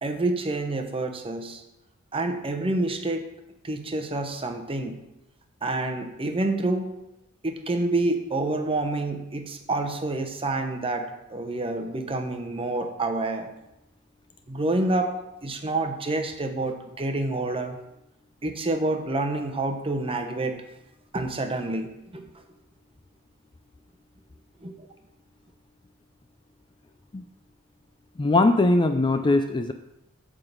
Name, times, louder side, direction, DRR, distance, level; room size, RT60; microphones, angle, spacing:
voice 1, 0.0-1.6 2.1-3.3 3.6-5.0 5.6-6.9 7.4-13.5 14.5-15.1 15.4-17.8 18.4-20.6 21.1-22.2 24.6-24.7, right 2 dB, 25° right, 5 dB, 0.9 m, -28 dB
voice 2, 28.2-29.7, left 2 dB, 20° left, 7 dB, 0.4 m, -21 dB
9.0 x 3.8 x 6.6 m, 0.89 s
head